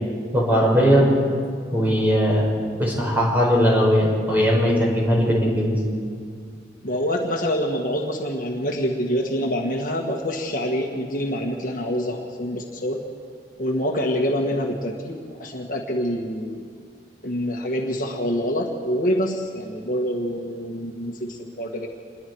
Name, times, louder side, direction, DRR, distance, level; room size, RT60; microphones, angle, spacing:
voice 1, 0.3-1.1 1.7-2.5 2.8-5.8, equal, 10° right, -3 dB, 5.8 m, -19 dB
voice 2, 6.8-13.0 13.6-16.7 17.2-21.9, equal, 45° left, 0 dB, 1.7 m, -26 dB
27.5 x 21.5 x 4.7 m, 2.2 s
head